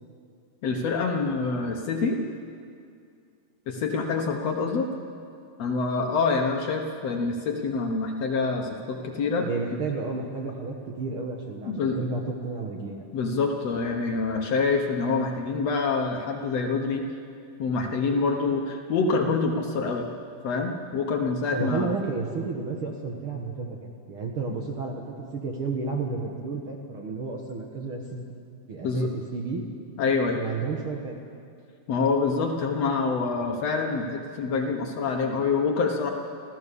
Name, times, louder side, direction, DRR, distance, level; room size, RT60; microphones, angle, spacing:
voice 1, 0.6-2.2 3.7-4.9 5.6-9.5 11.7-12.0 13.1-17.1 17.6-20.1 20.4-21.9 28.8-29.1 30.0-30.4 31.9-36.1, left 4 dB, 60° left, 2 dB, 2.1 m, -26 dB
voice 2, 9.4-13.0 21.5-25.0 25.3-28.2 28.7-29.6 30.3-31.2, right 4 dB, 50° right, 1 dB, 1.8 m, -32 dB
29.0 x 13.5 x 6.9 m, 2.3 s
omnidirectional pair, 3.9 m